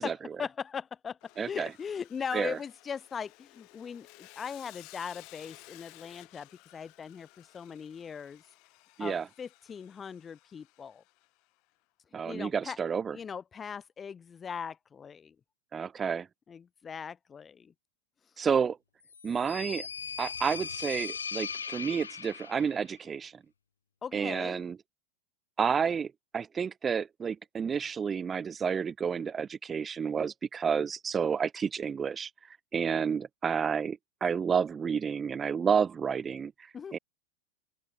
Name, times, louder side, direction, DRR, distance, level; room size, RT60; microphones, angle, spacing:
voice 1, 0.0-1.2 1.5-8.4 9.0-11.0 12.3-12.8 13.1-15.3 16.5-17.7 24.0-24.6 36.7-37.0, left 6 dB, 20° left, 1.0 m, -39 dB
Sawing, 1.2-11.5, left 28 dB, 45° left, 2.9 m, -56 dB
voice 2, 1.4-1.7 2.3-2.6 9.0-9.3 12.1-13.2 15.7-16.3 18.4-18.8 19.2-19.9 20.2-23.4 24.1-24.8 25.6-32.3 32.7-37.0, right 6 dB, 20° right, 0.7 m, -30 dB
sound 1, 19.1-22.8, left 6 dB, 70° left, 0.8 m, -39 dB
open air
figure-of-eight pair, 90°, 0 cm